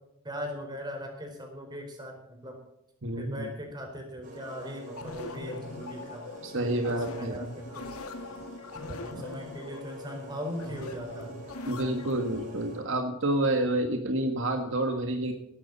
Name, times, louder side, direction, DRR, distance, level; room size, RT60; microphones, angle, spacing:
voice 1, 0.2-2.6 3.2-7.9 8.7-11.4 14.2-14.4, equal, 20° right, 2 dB, 4.3 m, -40 dB
voice 2, 3.0-3.5 6.4-7.4 9.1-9.2 11.6-15.3, right 1 dB, 60° right, 4 dB, 1.6 m, -29 dB
sound 1, 4.2-13.0, left 1 dB, 35° right, 5.7 m, -45 dB
sound 2, 5.0-12.5, left 2 dB, 85° left, 2.1 m, -43 dB
18.0 x 12.5 x 4.1 m, 0.84 s
head